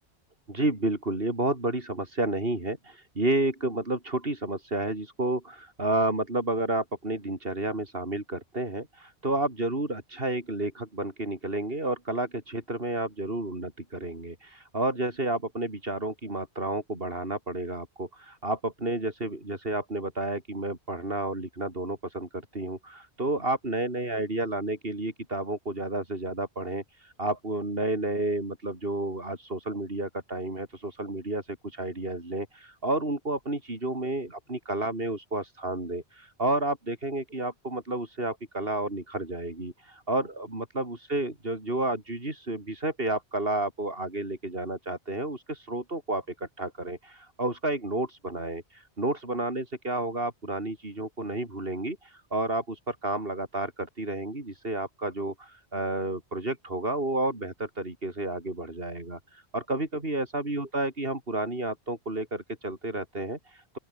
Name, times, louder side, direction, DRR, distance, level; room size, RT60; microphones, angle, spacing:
voice 1, 0.5-63.8, right 2 dB, 60° right, 4.9 m, -31 dB
open air
omnidirectional pair, 1.1 m